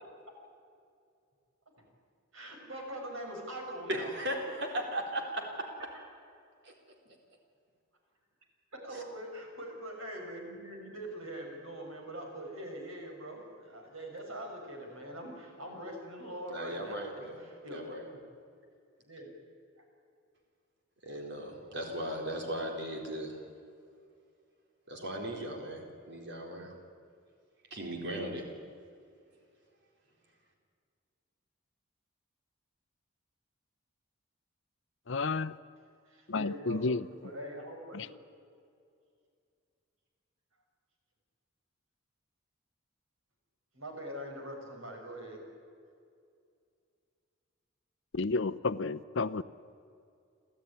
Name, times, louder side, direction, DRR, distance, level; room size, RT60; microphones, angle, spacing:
voice 1, 2.3-4.1 8.7-18.0 19.1-19.3 36.1-36.8 37.1-38.1 43.7-45.4, right 1 dB, 75° right, 2 dB, 6.0 m, -43 dB
voice 2, 3.9-5.7 6.6-6.7 8.9-9.0 16.5-17.4 17.7-18.0 21.0-23.4 24.9-26.7 27.7-28.5, right 1 dB, 55° right, 2 dB, 4.2 m, -37 dB
voice 3, 35.1-35.5 36.3-37.0 37.9-38.1 48.1-49.4, left 3 dB, 65° left, 13 dB, 0.7 m, -31 dB
30.0 x 13.0 x 9.9 m, 2.4 s
head